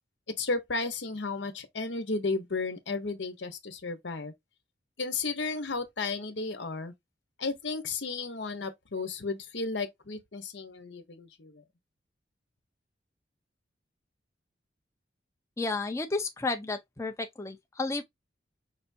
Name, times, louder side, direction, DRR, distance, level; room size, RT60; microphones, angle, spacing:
voice 1, 0.4-4.3 5.0-6.9 7.4-11.6, left 3 dB, 75° left, 1.0 m, -33 dB
voice 2, 15.6-18.0, left 3 dB, 15° left, 0.6 m, -32 dB
5.5 x 3.4 x 2.6 m
head